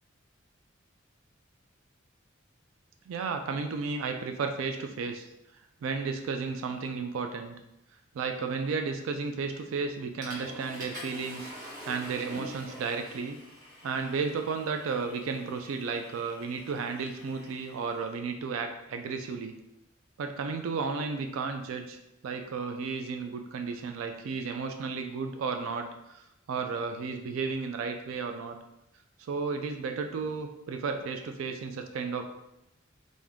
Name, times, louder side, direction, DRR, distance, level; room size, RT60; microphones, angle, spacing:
voice 1, 3.1-5.3 5.8-7.6 8.1-11.5 11.8-13.4 13.8-19.5 20.2-28.6 29.2-32.2, right 4 dB, 80° right, 6 dB, 0.3 m, -33 dB
Water / Toilet flush, 9.5-9.8 10.2-18.1, equal, 40° right, 1.2 m, -46 dB
3.5 x 2.6 x 3.5 m, 0.87 s
head